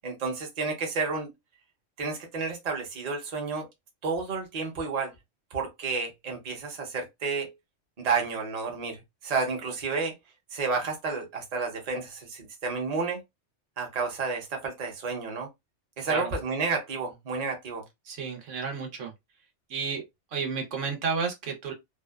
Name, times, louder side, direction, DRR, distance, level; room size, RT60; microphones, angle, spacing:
voice 1, 0.0-1.3 2.0-3.7 4.0-5.1 5.5-7.5 8.0-10.1 10.5-13.2 13.8-15.5 16.0-17.8, right 4 dB, 40° right, 0.7 m, -31 dB
voice 2, 18.1-19.1 19.7-20.0 20.3-21.7, right 5 dB, 85° right, 1.1 m, -31 dB
2.6 x 2.1 x 2.2 m
omnidirectional pair, 1.3 m